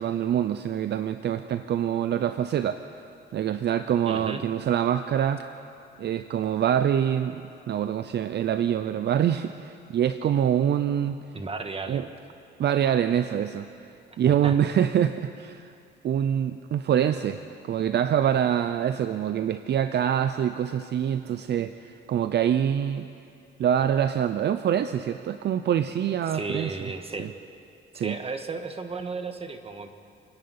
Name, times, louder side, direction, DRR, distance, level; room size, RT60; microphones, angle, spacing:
voice 1, 0.0-2.9 3.3-5.5 6.0-11.2 11.9-12.1 12.6-13.7 14.2-15.7 16.0-23.1 23.6-26.7 27.2-27.3 27.9-28.2, right 9 dB, 60° right, 11 dB, 0.6 m, -25 dB
voice 2, 4.1-4.4 11.3-12.1 14.3-14.5 26.3-27.3 27.9-29.9, right 3 dB, 30° right, 6 dB, 1.8 m, -34 dB
28.0 x 10.5 x 8.8 m, 2.5 s
cardioid pair, 90°, 20 cm